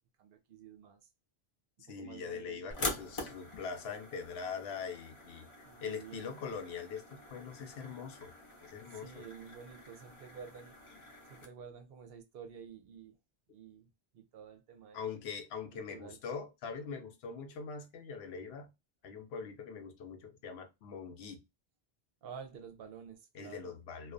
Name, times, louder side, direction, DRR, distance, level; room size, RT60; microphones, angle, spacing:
voice 1, 0.2-1.1 1.8-3.3 5.6-6.3 8.9-10.8 11.3-13.2 13.5-15.0 15.7-16.2 22.2-23.7, right 7 dB, 70° right, 0.8 m, -50 dB
voice 2, 1.9-8.3 8.6-9.2 14.9-18.7 19.0-21.4 23.3-24.1, left 6 dB, 75° left, 0.9 m, -43 dB
sound 1, 2.7-11.5, left 2 dB, 35° left, 0.6 m, -45 dB
2.4 x 2.2 x 2.4 m
omnidirectional pair, 1.1 m